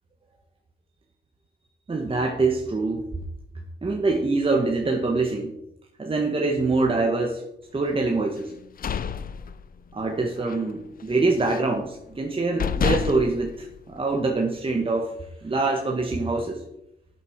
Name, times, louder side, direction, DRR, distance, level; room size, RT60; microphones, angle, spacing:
voice 1, 1.9-3.0 3.8-5.5 6.0-7.4 7.7-8.5 9.9-15.1 15.4-16.6, right 3 dB, 30° right, 1 dB, 1.6 m, -24 dB
sound 1, 8.5-10.1 10.4-10.7 11.0-11.8 12.2-12.3 12.6-14.4, left 7 dB, 50° left, 0.7 m, -29 dB
11.5 x 7.9 x 4.8 m, 0.81 s
cardioid pair, 80°, 19 cm